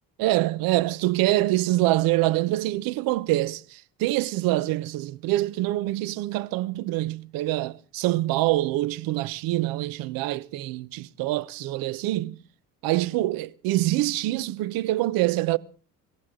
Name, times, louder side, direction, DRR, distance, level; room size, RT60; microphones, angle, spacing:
voice 1, 0.2-12.4 12.8-15.6, right 17 dB, 80° right, 0.9 m, -25 dB
26.0 x 15.0 x 3.7 m
cardioid pair, 100°, 34 cm